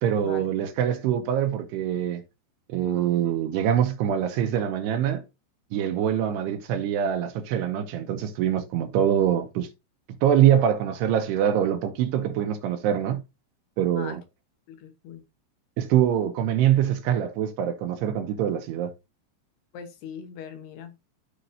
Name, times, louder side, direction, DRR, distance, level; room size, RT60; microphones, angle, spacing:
voice 1, 0.0-2.2 2.7-5.2 5.7-9.7 10.2-13.2 13.8-14.2 15.8-18.9, right 10 dB, 80° right, 2.6 m, -24 dB
voice 2, 14.7-15.2 19.7-20.9, left 7 dB, 70° left, 2.9 m, -40 dB
13.5 x 5.0 x 2.6 m
omnidirectional pair, 5.3 m